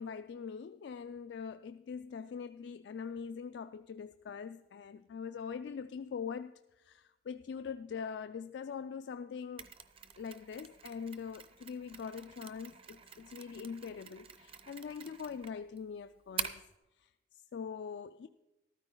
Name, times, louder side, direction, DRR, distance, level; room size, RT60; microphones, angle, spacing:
voice 1, 0.0-6.5 6.8-9.7 10.2-16.6 17.0-17.1 17.4-18.3, left 6 dB, 70° left, 0.3 m, -43 dB
Mechanisms, 9.6-16.8, right 7 dB, 30° right, 0.6 m, -46 dB
13.5 x 13.0 x 3.8 m
head